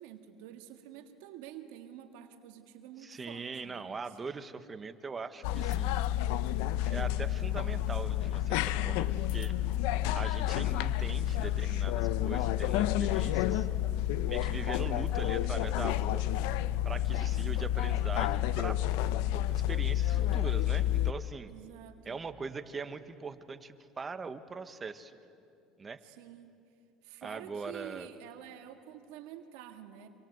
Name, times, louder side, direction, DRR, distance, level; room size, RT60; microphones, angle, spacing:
voice 1, 0.0-4.0 21.4-22.2 26.0-26.5 27.0-30.1, right 11 dB, 85° right, 6 dB, 1.8 m, -49 dB
voice 2, 3.0-6.1 6.8-9.5 10.1-13.7 14.3-16.2 16.8-18.8 19.3-21.5 22.0-25.1 25.8-26.0 27.2-28.1, right 4 dB, 25° right, 10 dB, 1.4 m, -41 dB
sound 1, 5.4-21.1, left 12 dB, 80° left, 0.7 m, -30 dB
26.5 x 26.5 x 8.0 m, 2.6 s
supercardioid pair, 105°, 0 cm